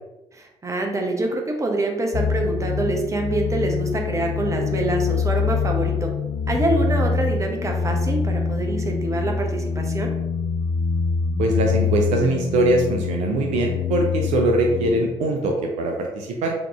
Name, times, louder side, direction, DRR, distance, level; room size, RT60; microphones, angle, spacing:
voice 1, 0.3-6.1 6.5-10.1, right 2 dB, 20° right, 2 dB, 0.9 m, -25 dB
sound 1, 2.1-15.1, left 6 dB, 40° left, 0.4 m, -25 dB
voice 2, 11.4-16.5, right 2 dB, 60° right, 2 dB, 0.6 m, -22 dB
3.7 x 3.0 x 3.5 m, 0.97 s
figure-of-eight pair, 45°, 14 cm